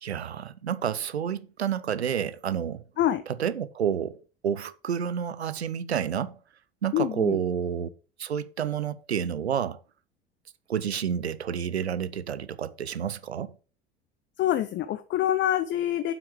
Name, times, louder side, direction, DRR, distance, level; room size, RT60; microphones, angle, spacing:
voice 1, 0.0-2.8 3.3-6.4 6.8-7.9 8.2-9.8 10.7-13.6, right 8 dB, 85° right, 0.7 m, -29 dB
voice 2, 6.9-7.4 14.4-16.1, left 12 dB, 35° left, 0.7 m, -26 dB
8.0 x 6.1 x 6.0 m
figure-of-eight pair, 70°, 31 cm